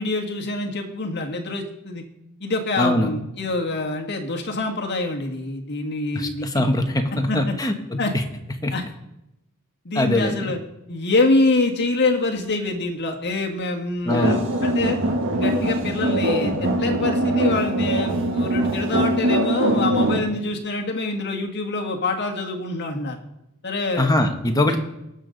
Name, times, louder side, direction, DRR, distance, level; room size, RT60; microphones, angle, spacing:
voice 1, 0.0-2.0 2.4-6.6 7.1-7.5 8.0-8.1 8.7-8.8 9.8-10.6 10.9-14.3 14.6-15.0 15.3-23.2 23.6-24.1 24.7-24.8, left 2 dB, 50° left, 2 dB, 1.6 m, -25 dB
voice 2, 2.8-3.1 6.1-7.7 8.1-8.2 8.6-8.7 9.9-10.5 14.0-14.4 24.0-24.8, left 1 dB, 15° left, 5 dB, 1.1 m, -22 dB
sound 1, 14.1-20.2, right 1 dB, 60° right, 1.4 m, -22 dB
19.0 x 6.8 x 3.9 m, 0.88 s
head